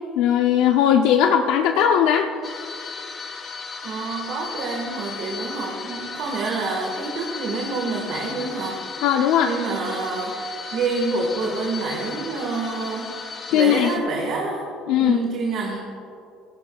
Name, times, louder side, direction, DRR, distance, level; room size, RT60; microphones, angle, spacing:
voice 1, 0.2-2.3 9.0-9.5 13.5-13.9 14.9-15.2, left 9 dB, 80° left, 4 dB, 0.6 m, -18 dB
sound 1, 2.4-14.0, left 5 dB, 30° left, 1.2 m, -36 dB
voice 2, 3.8-8.8 9.4-13.1 13.5-14.7 15.0-15.8, right 3 dB, 60° right, 0 dB, 1.6 m, -27 dB
17.5 x 15.5 x 2.3 m, 2.5 s
cardioid pair, 145°, 0 cm